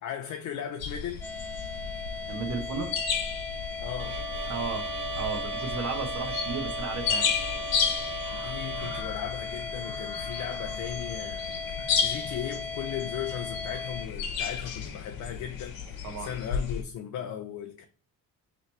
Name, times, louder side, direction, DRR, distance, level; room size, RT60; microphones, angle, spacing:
voice 1, 0.0-1.3 3.8-4.2 8.3-17.8, left 9 dB, 55° left, 0.5 m, -37 dB
sound 1, 0.8-16.8, left 6 dB, 80° left, 1.0 m, -33 dB
sound 2, 1.2-14.1, left 4 dB, 5° left, 0.7 m, -37 dB
voice 2, 2.3-2.9 4.5-4.9 5.2-7.3 16.0-16.3, right 4 dB, 55° right, 0.8 m, -34 dB
Bowed string instrument, 4.0-9.0, right 5 dB, 90° right, 1.0 m, -37 dB
3.2 x 3.0 x 4.2 m
cardioid pair, 160°, 34 cm